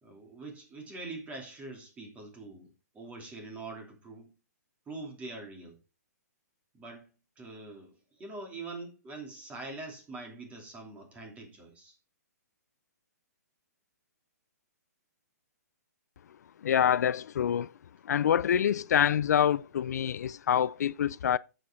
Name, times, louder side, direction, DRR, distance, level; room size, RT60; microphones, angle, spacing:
voice 1, 0.0-4.3 4.9-5.8 6.7-7.1 7.4-12.0, right 3 dB, 15° right, 2.9 m, -44 dB
voice 2, 16.6-17.7 18.0-21.4, left 9 dB, 70° left, 0.4 m, -26 dB
10.5 x 7.8 x 3.8 m
hypercardioid pair, 145°, 9 cm